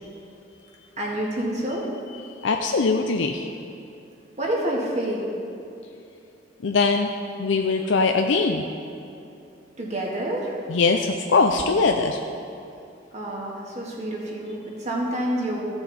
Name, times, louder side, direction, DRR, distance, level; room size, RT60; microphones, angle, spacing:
voice 1, 1.0-1.9 4.4-5.3 9.8-10.6 13.1-15.7, right 1 dB, 40° right, -3 dB, 1.9 m, -28 dB
voice 2, 2.4-3.5 6.6-7.1 7.4-8.6 10.7-12.2, left 4 dB, 80° left, 3 dB, 0.5 m, -21 dB
15.0 x 6.7 x 4.2 m, 2.7 s
head